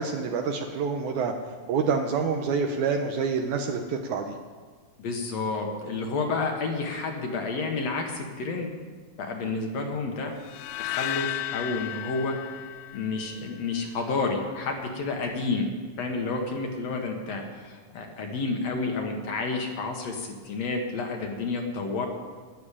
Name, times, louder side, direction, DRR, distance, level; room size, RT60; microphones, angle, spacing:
voice 1, 0.0-1.3 1.7-4.3, right 5 dB, 75° right, 4 dB, 2.0 m, -27 dB
voice 2, 5.0-8.7 9.2-10.3 10.8-12.3 12.9-15.7 16.0-22.1, left 3 dB, 60° left, 2 dB, 2.2 m, -30 dB
sound 1, 10.4-13.6, left 14 dB, 80° left, 2.0 m, -34 dB
12.0 x 7.2 x 9.9 m, 1.5 s
omnidirectional pair, 3.8 m